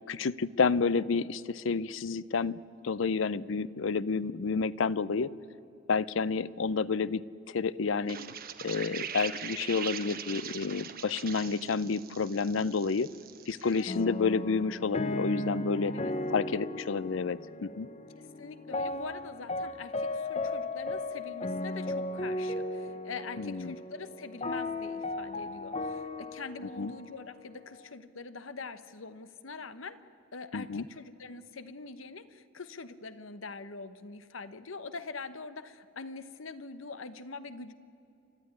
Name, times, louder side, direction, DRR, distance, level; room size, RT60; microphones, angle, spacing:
voice 1, 0.1-2.6 2.8-5.3 5.9-7.2 7.5-8.2 8.6-13.1 13.5-15.9 16.3-17.9 23.4-23.8 26.8-26.9 30.5-30.8, left 4 dB, 70° left, 18 dB, 0.6 m, -30 dB
voice 2, 8.0-8.3 13.6-13.9 15.9-16.1 18.2-30.0 30.3-37.7, left 4 dB, 85° left, 12 dB, 1.1 m, -44 dB
sound 1, 8.1-13.9, right 8 dB, 50° right, 1.1 m, -41 dB
sound 2, 13.9-27.9, left 2 dB, 35° left, 0.8 m, -36 dB
29.5 x 13.0 x 9.9 m, 2.8 s
head